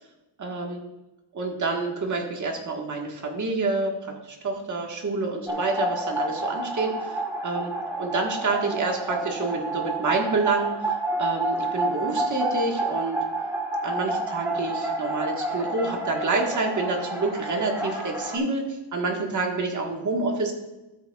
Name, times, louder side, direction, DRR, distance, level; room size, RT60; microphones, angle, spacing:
voice 1, 0.4-0.8 1.3-3.9 4.2-7.7 8.0-13.2 13.8-20.5, right 3 dB, 35° right, 1 dB, 1.5 m, -28 dB
sound 1, 5.5-18.4, right 2 dB, 5° right, 1.3 m, -29 dB
13.5 x 7.8 x 2.3 m, 1.0 s
wide cardioid pair, 170°, 48 cm